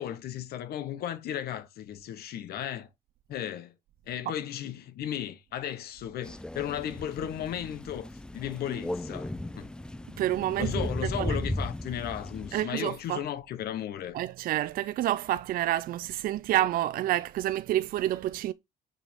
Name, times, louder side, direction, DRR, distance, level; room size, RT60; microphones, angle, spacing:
voice 1, 0.0-2.9 3.3-3.7 4.1-9.7 10.6-14.2, left 11 dB, 70° left, 1.0 m, -35 dB
Crow, 6.2-12.6, left 1 dB, 5° left, 0.4 m, -36 dB
voice 2, 10.2-11.4 12.5-13.3 14.1-18.5, right 13 dB, 60° right, 0.4 m, -29 dB
6.7 x 6.2 x 3.5 m
cardioid pair, 110°, 17 cm